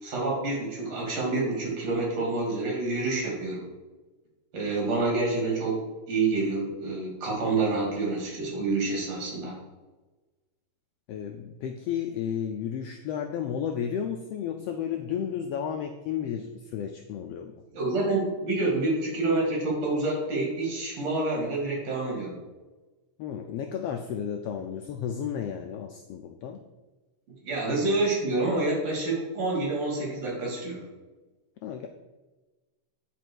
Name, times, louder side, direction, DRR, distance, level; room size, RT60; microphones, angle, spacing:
voice 1, 0.0-3.6 4.5-5.8 6.1-9.5 17.7-22.4 27.4-30.8, right 2 dB, 60° right, -2 dB, 3.5 m, -28 dB
voice 2, 11.1-17.5 23.2-26.6 31.6-31.9, left 8 dB, 80° left, 5 dB, 1.4 m, -33 dB
9.9 x 5.1 x 4.6 m, 1.2 s
omnidirectional pair, 3.3 m